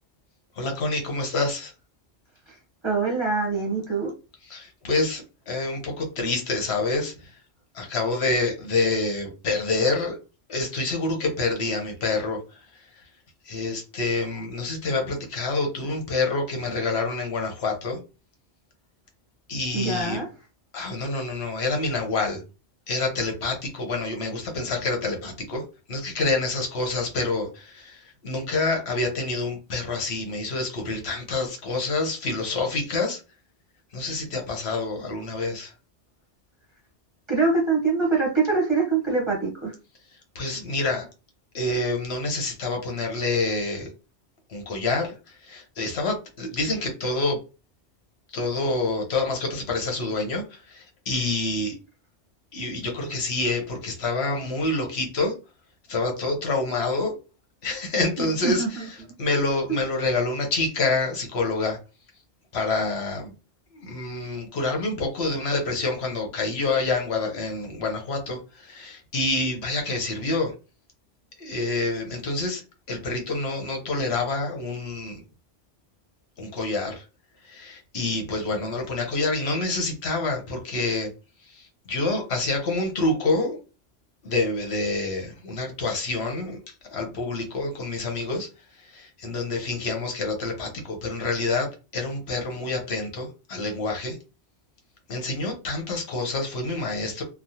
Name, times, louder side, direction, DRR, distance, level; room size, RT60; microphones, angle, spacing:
voice 1, 0.6-1.7 4.5-7.3 7.7-10.2 10.5-13.0 13.4-18.0 19.5-20.2 20.7-22.4 22.9-33.2 33.9-35.7 40.3-41.1 41.5-43.9 44.5-47.4 48.3-51.8 52.5-55.4 55.9-57.2 57.6-58.8 59.2-61.8 62.5-63.3 63.7-70.5 71.4-72.6 72.9-75.2 76.4-77.0 77.4-81.1 81.4-83.6 84.2-88.5 88.8-94.2 95.1-97.2, left 3 dB, 65° left, 3 dB, 1.0 m, -27 dB
voice 2, 2.8-4.1 19.7-20.3 37.3-39.7 58.2-58.8 59.7-59.8, right 4 dB, 25° right, -3 dB, 0.9 m, -24 dB
3.1 x 2.1 x 2.7 m, 0.31 s
omnidirectional pair, 1.2 m